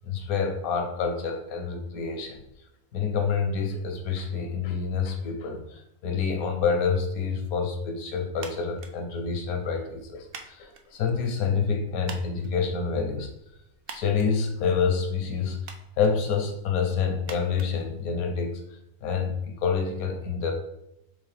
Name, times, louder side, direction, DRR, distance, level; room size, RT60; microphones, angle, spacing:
voice 1, 0.1-2.4 2.9-13.3 13.9-15.6 16.0-18.6 19.0-20.5, left 5 dB, 80° left, 5 dB, 1.1 m, -27 dB
sound 1, 8.3-18.6, right 5 dB, 75° right, 0.5 m, -48 dB
4.7 x 3.1 x 3.2 m, 0.81 s
omnidirectional pair, 1.5 m